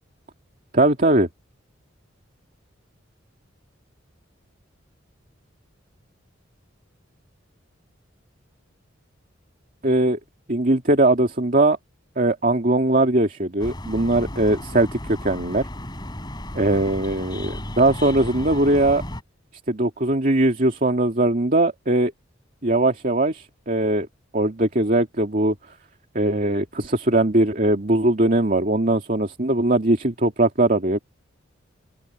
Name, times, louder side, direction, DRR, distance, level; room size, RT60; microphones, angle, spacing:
voice 1, 0.7-1.3 9.8-10.2 10.5-11.8 12.2-15.7 16.5-19.0 19.7-22.1 22.6-24.1 24.3-25.5 26.1-31.0, right 2 dB, 45° right, 2.3 m, -20 dB
sound 1, 13.6-19.2, left 1 dB, 20° left, 4.1 m, -34 dB
open air
head